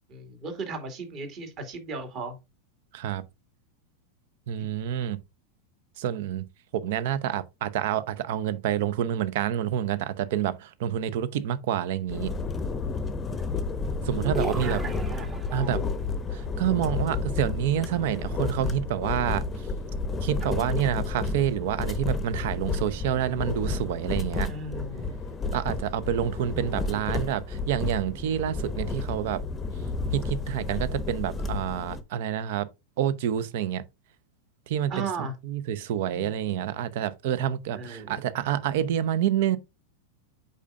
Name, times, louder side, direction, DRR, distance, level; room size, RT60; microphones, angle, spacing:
voice 1, 0.1-2.4 4.6-4.7 13.4-15.8 24.5-25.2 26.5-27.0 34.9-35.3 37.7-38.2, right 3 dB, 35° right, 2.2 m, -37 dB
voice 2, 2.9-3.2 4.5-5.2 6.0-6.5 6.7-12.3 14.0-14.8 15.5-15.8 16.3-19.4 20.2-24.5 25.5-29.4 30.1-32.7 33.0-33.8 34.7-39.6, right 10 dB, 50° right, 0.7 m, -28 dB
sound 1, 12.1-32.0, left 3 dB, 20° left, 0.8 m, -31 dB
sound 2, 14.3-15.9, equal, 10° right, 1.0 m, -35 dB
8.3 x 5.6 x 2.4 m
figure-of-eight pair, 90°, 0 cm